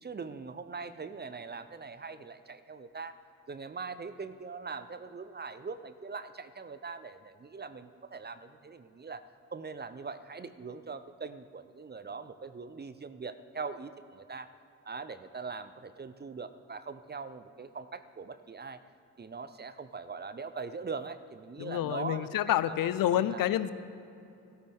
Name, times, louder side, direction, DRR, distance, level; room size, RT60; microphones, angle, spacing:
voice 1, 0.0-3.1 3.5-9.2 9.5-14.5 14.8-18.8 19.2-23.5, right 4 dB, 25° right, 12 dB, 0.7 m, -42 dB
voice 2, 21.6-23.7, left 12 dB, 55° left, 15 dB, 0.6 m, -28 dB
17.0 x 12.5 x 3.7 m, 2.8 s
hypercardioid pair, 40°, 41 cm